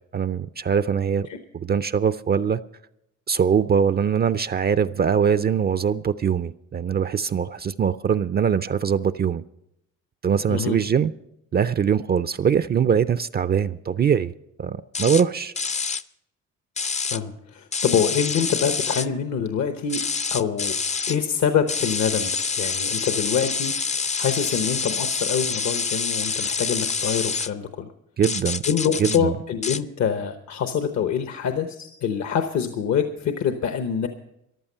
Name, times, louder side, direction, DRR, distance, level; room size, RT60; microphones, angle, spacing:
voice 1, 0.1-1.3 1.5-2.6 3.3-9.4 10.2-11.1 11.5-14.3 14.6-15.5 28.2-28.6 29.0-29.3, right 7 dB, 35° right, 14 dB, 0.4 m, -22 dB
sound 1, 14.9-15.2 15.6-16.0 16.8-17.2 17.7-19.1 19.9-21.2 21.7-27.5 28.2-29.2 29.6-29.8, left 5 dB, 25° left, 0.5 m, -27 dB
voice 2, 17.1-20.0 20.3-20.8 21.1-27.9 28.7-34.1, left 7 dB, 65° left, 7 dB, 1.0 m, -25 dB
14.5 x 11.5 x 5.5 m, 0.79 s
cardioid pair, 90°, 30 cm